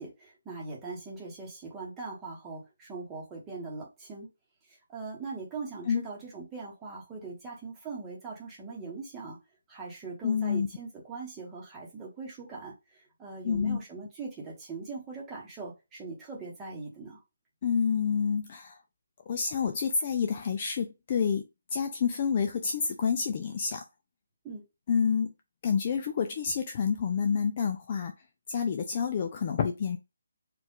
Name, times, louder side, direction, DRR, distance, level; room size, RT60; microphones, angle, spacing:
voice 1, 0.0-4.3 4.7-9.4 9.7-17.2 24.4-24.6, right 4 dB, 10° right, 1.0 m, -41 dB
voice 2, 10.2-10.7 13.4-13.8 17.6-18.8 19.3-21.4 21.7-23.8 24.9-25.3 25.6-28.1 28.5-30.0, left 6 dB, 25° left, 0.4 m, -28 dB
4.4 x 2.4 x 3.7 m
hypercardioid pair, 180°, 0 cm